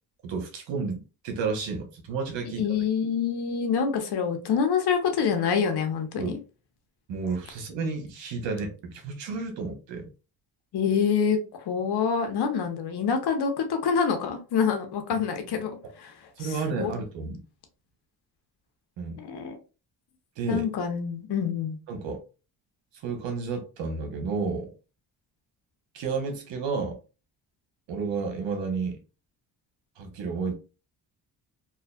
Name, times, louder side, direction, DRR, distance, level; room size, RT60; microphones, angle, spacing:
voice 1, 0.2-2.6 6.2-6.4 7.1-10.1 16.4-17.4 19.0-19.2 20.4-20.7 21.9-22.2 23.0-24.7 25.9-27.0 27.9-29.0 30.0-30.5, right 4 dB, 80° right, 1.0 m, -31 dB
voice 2, 2.5-6.4 10.7-16.1 16.4-16.9 19.2-19.6 20.5-21.8, left 6 dB, 65° left, 0.8 m, -26 dB
2.8 x 2.3 x 2.3 m
cardioid pair, 80°, 43 cm